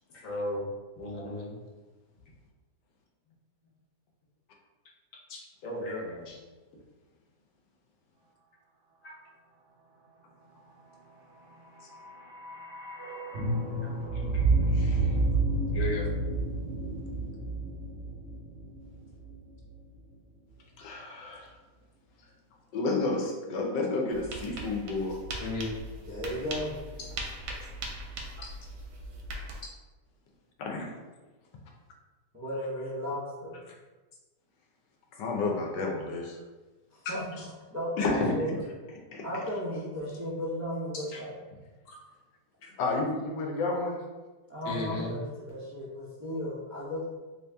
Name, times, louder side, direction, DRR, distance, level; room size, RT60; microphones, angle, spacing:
voice 1, 0.1-0.7 0.9-1.5 5.3-6.4 9.0-9.2 11.8-11.9 13.8-14.4 15.7-16.1 25.4-25.8 28.4-28.5 37.4-37.5 41.1-41.2 41.8-42.0 42.6-42.7 44.6-45.2, left 1 dB, 60° left, -3 dB, 1.0 m, -36 dB
sound 1, 11.6-19.8 20.0-20.1, right 2 dB, 55° right, 0.8 m, -30 dB
voice 2, 14.7-15.2 20.8-21.5 22.7-25.2 30.6-31.0 35.2-36.4 37.0-37.1 38.0-38.6 39.1-39.2 42.8-44.0, left 3 dB, 90° left, 1 dB, 1.3 m, -31 dB
sound 2, 24.1-29.6, right 2 dB, 85° right, 1.2 m, -40 dB
voice 3, 26.1-26.7 32.3-33.5 36.9-37.2 37.7-38.5 39.2-41.3 44.5-47.1, equal, 25° right, -9 dB, 0.3 m, -35 dB
3.1 x 2.7 x 3.3 m, 1.2 s
omnidirectional pair, 1.8 m